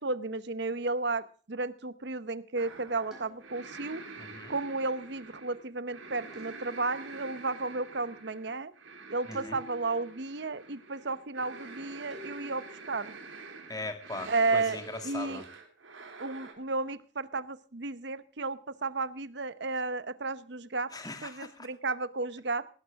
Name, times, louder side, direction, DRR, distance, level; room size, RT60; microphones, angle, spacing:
voice 1, 0.0-4.0 4.5-8.7 9.1-13.1 14.3-14.8 15.0-15.4 16.2-20.9 21.2-22.7, right 3 dB, 60° right, 15 dB, 0.8 m, -33 dB
sound 1, 2.6-16.5, right 3 dB, 90° right, 3.7 m, -47 dB
sound 2, 3.1-3.9 6.3-7.1 9.3-10.1 12.1-12.9 14.7-15.5, right 1 dB, 5° right, 4.7 m, -50 dB
voice 2, 4.2-4.6 9.3-9.6 13.7-15.5 20.9-21.7, left 2 dB, 20° left, 7 dB, 2.0 m, -40 dB
18.5 x 12.5 x 3.5 m, 0.40 s
head